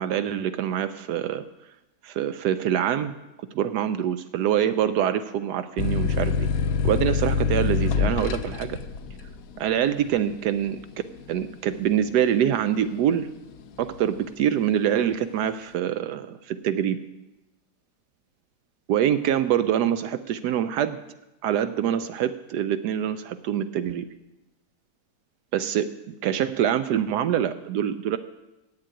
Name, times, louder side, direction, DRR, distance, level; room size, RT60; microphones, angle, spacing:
voice 1, 0.0-1.5 2.0-3.2 3.5-6.5 6.8-8.8 9.6-10.8 11.3-13.3 13.8-17.1 18.9-21.0 21.4-24.1 25.5-28.2, right 10 dB, 75° right, 12 dB, 1.1 m, -25 dB
sound 1, 5.8-13.1 13.5-14.2, left 6 dB, 65° left, 1.0 m, -26 dB
8.9 x 7.5 x 9.0 m, 0.99 s
omnidirectional pair, 1.9 m